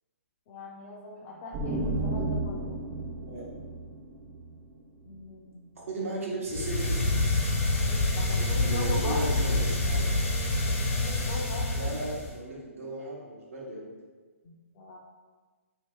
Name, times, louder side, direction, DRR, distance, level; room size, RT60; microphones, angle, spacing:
voice 1, 0.5-2.9 5.0-5.7 7.9-9.4 10.6-12.1 14.4-15.0, left 2 dB, 40° left, -4 dB, 0.4 m, -40 dB
sound 1, 1.5-5.1, right 2 dB, 25° right, 0.5 m, -33 dB
voice 2, 5.9-7.0 8.3-10.1 11.8-13.9, right 2 dB, 75° right, -5 dB, 0.9 m, -35 dB
sound 2, 6.5-12.4, left 2 dB, 70° left, 0.9 m, -27 dB
2.8 x 2.5 x 3.5 m, 1.4 s
hypercardioid pair, 135°, 8 cm